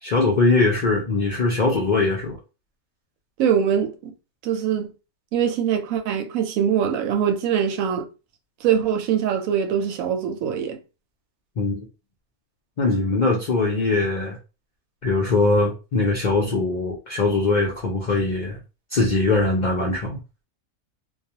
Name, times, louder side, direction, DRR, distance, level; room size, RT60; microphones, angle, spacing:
voice 1, 0.0-2.4 11.6-11.8 12.8-14.4 15.0-18.6 18.9-20.2, left 3 dB, 70° left, 0.4 m, -21 dB
voice 2, 3.4-4.1 4.4-4.9 5.3-8.1 8.6-10.8, right 8 dB, 75° right, 1.0 m, -23 dB
2.3 x 2.2 x 2.7 m
omnidirectional pair, 1.5 m